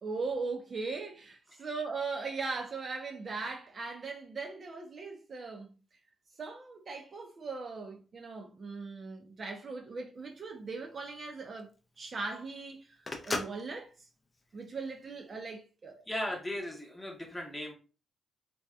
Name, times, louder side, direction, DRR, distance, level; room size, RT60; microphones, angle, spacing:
voice 1, 0.0-5.7 6.4-11.7 12.0-13.0 13.2-13.9 14.5-16.0, right 4 dB, 45° right, 0.5 m, -39 dB
Telephone, 10.2-15.4, left 2 dB, 30° left, 0.5 m, -41 dB
voice 2, 16.1-17.7, left 1 dB, 10° left, 0.9 m, -37 dB
2.7 x 2.2 x 2.2 m
cardioid pair, 75°, 0 cm